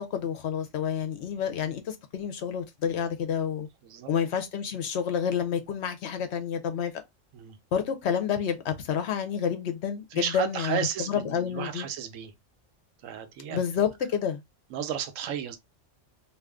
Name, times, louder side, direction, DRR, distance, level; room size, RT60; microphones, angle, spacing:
voice 1, 0.0-3.7 4.1-6.9 7.7-10.8 11.1-11.9 13.5-14.4, left 8 dB, 65° left, 0.8 m, -29 dB
voice 2, 10.1-12.3 13.0-13.9 14.7-15.6, right 8 dB, 90° right, 1.0 m, -33 dB
2.5 x 2.4 x 3.5 m
omnidirectional pair, 1.3 m